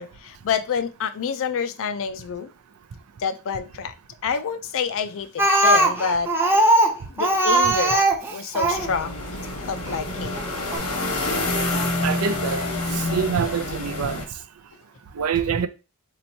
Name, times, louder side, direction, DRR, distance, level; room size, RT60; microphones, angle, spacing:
voice 1, 0.0-2.5 3.2-3.9 4.2-6.3 7.1-8.0 8.3-10.3, left 6 dB, 65° left, 0.4 m, -28 dB
Speech, 5.4-8.9 9.9-10.0 10.4-10.5 10.7-10.8, right 1 dB, 10° right, 0.5 m, -19 dB
sound 1, 8.7-14.3, left 2 dB, 85° left, 1.2 m, -27 dB
voice 2, 12.0-12.6 13.1-14.2 15.2-15.7, right 6 dB, 75° right, 0.4 m, -25 dB
4.2 x 2.9 x 2.7 m
head